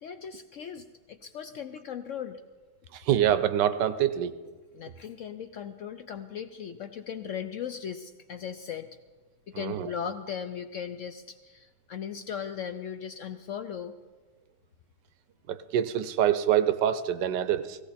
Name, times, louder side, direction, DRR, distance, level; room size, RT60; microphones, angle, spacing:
voice 1, 0.0-2.4 4.7-8.9 9.5-13.9, left 8 dB, 70° left, 9 dB, 0.7 m, -38 dB
voice 2, 2.9-4.3 9.5-9.9 15.5-17.8, right 10 dB, 90° right, 13 dB, 1.3 m, -25 dB
17.0 x 16.0 x 4.2 m, 1.3 s
omnidirectional pair, 1.8 m